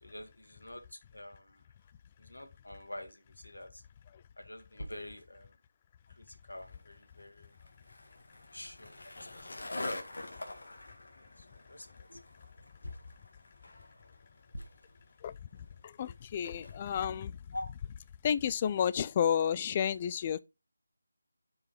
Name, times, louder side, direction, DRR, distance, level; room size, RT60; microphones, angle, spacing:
voice 1, 0.0-1.6 2.2-3.8 4.4-5.6 6.1-7.5 8.5-10.7 11.2-12.2 12.8-13.1 14.5-14.9 17.5-17.7, left 1 dB, 90° left, 1.7 m, -47 dB
Skateboard, 6.6-17.1, left 2 dB, 60° left, 1.7 m, -46 dB
voice 2, 15.8-17.3 18.2-20.4, left 8 dB, 25° left, 0.3 m, -31 dB
4.8 x 4.7 x 5.6 m
figure-of-eight pair, 160°, 0 cm